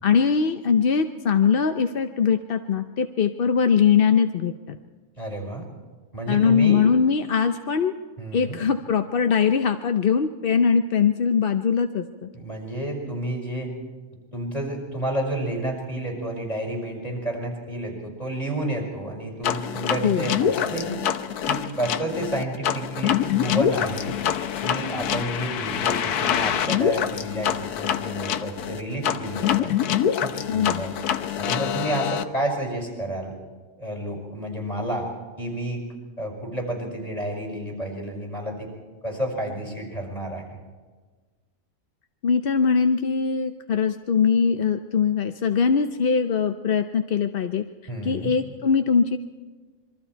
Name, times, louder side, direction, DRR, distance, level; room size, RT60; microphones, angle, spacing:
voice 1, 0.0-4.8 6.3-7.9 8.3-12.3 20.0-20.3 30.5-30.8 42.2-47.6 48.0-49.2, left 6 dB, 50° left, 7 dB, 0.7 m, -21 dB
voice 2, 5.2-5.7 6.1-6.9 8.2-8.6 12.3-13.7 14.3-21.0 21.5-24.1 24.6-29.7 30.2-30.9 31.4-33.3 33.8-35.1 35.4-35.8 36.2-38.7 39.0-40.6 47.9-48.4, right 1 dB, 25° left, 1 dB, 5.4 m, -30 dB
sound 1, 19.4-32.2, left 9 dB, 85° left, 1.4 m, -25 dB
27.0 x 23.0 x 4.6 m, 1.4 s
omnidirectional pair, 1.6 m